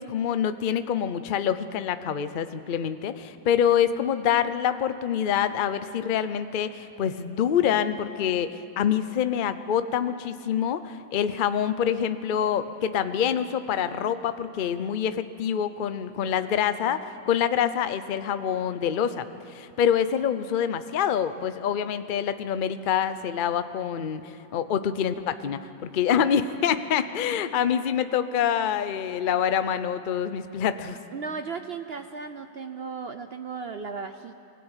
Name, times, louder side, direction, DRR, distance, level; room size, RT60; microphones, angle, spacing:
voice 1, 0.0-24.2 24.5-31.0, left 8 dB, 65° left, 11 dB, 0.5 m, -26 dB
voice 2, 31.1-34.3, right 5 dB, 70° right, 8 dB, 0.5 m, -35 dB
21.5 x 16.5 x 9.0 m, 3.0 s
omnidirectional pair, 1.9 m